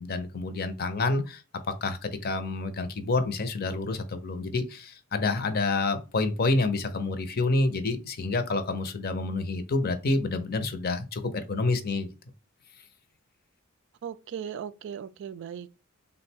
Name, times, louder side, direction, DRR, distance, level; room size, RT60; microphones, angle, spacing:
voice 1, 0.0-12.1, left 3 dB, 50° left, 0.6 m, -28 dB
voice 2, 14.0-15.7, right 8 dB, 60° right, 0.3 m, -37 dB
3.5 x 2.2 x 4.2 m
head